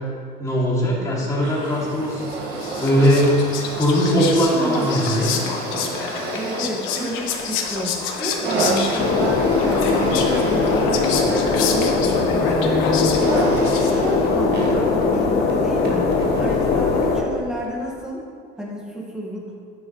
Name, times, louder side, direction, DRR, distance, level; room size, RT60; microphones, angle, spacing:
voice 1, 0.4-2.5 2.8-5.4, equal, 15° left, -6 dB, 2.5 m, -20 dB
sound 1, 1.3-16.8 17.6-17.7, right 2 dB, 50° right, 1.7 m, -30 dB
Whispering, 2.3-14.3, left 6 dB, 70° left, 1.2 m, -29 dB
voice 2, 4.5-4.9 6.3-13.5 13.9-16.1 16.4-18.2 18.6-19.5, right 1 dB, 5° right, -3 dB, 1.7 m, -30 dB
sound 2, 9.0-17.2, left 4 dB, 45° left, 1.2 m, -20 dB
11.5 x 9.5 x 3.1 m, 2.2 s
cardioid pair, 155°, 21 cm